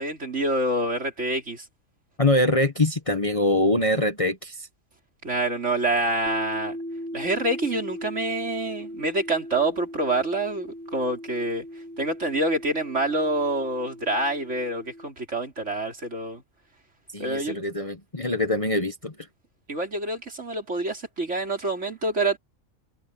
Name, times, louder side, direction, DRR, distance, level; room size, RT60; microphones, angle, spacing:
voice 1, 0.0-1.6 5.2-6.8 7.1-11.6 12.0-16.4 17.2-17.6 19.7-22.4, right 2 dB, 60° right, 4.6 m, -27 dB
voice 2, 2.2-4.7 17.1-19.1, left 1 dB, 25° left, 1.2 m, -23 dB
sound 1, 6.3-15.1, equal, 40° right, 7.1 m, -38 dB
omnidirectional pair, 1.4 m